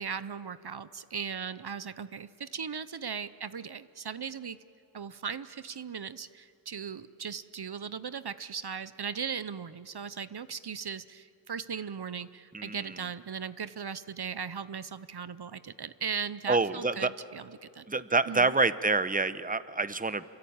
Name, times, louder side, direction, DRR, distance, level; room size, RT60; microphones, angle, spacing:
voice 1, 0.0-4.6 4.9-18.5, right 6 dB, 70° right, 14 dB, 0.7 m, -38 dB
voice 2, 12.5-12.9 16.5-17.1 17.9-20.2, right 3 dB, 20° right, 14 dB, 0.8 m, -27 dB
27.5 x 24.0 x 8.7 m, 2.5 s
wide cardioid pair, 50°, 40 cm